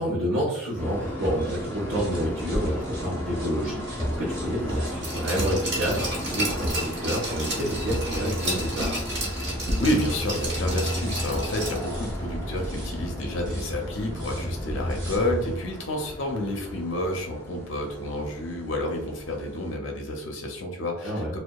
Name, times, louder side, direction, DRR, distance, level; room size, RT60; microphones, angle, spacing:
voice 1, 0.0-9.0 21.0-21.3, equal, 75° right, -7 dB, 0.7 m, -29 dB
sound 1, 0.8-19.7, left 1 dB, 10° left, 0.4 m, -37 dB
sound 2, 1.2-15.6, equal, 20° right, 0.7 m, -33 dB
Glass, 5.0-12.0 12.3-12.4, right 1 dB, 60° right, 1.1 m, -33 dB
voice 2, 9.6-21.4, left 1 dB, 70° left, 2 dB, 0.5 m, -30 dB
2.7 x 2.1 x 2.2 m, 0.73 s
head